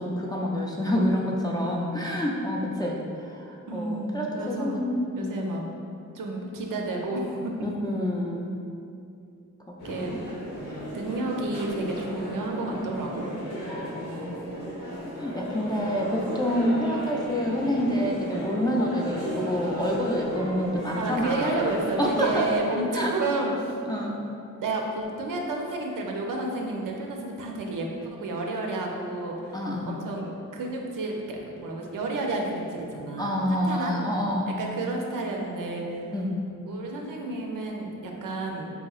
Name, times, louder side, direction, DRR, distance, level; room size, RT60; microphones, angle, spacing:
voice 1, 0.0-5.5 7.6-8.5 10.1-10.3 13.7-14.6 14.9-21.6 22.0-22.5 22.9-23.1 23.9-24.2 29.5-30.0 33.2-34.6 36.1-36.3, equal, 15° left, -3 dB, 0.3 m, -28 dB
voice 2, 3.7-4.8 5.2-5.6 6.1-7.5 9.8-10.1 10.9-13.3 21.0-23.7 24.6-29.6 29.9-34.0 34.6-36.1 36.7-38.7, right 2 dB, 80° right, 0 dB, 0.5 m, -31 dB
sound 1, 9.8-22.6, equal, 90° left, 1.0 m, -35 dB
4.1 x 2.8 x 2.3 m, 2.5 s
wide cardioid pair, 100°, 32 cm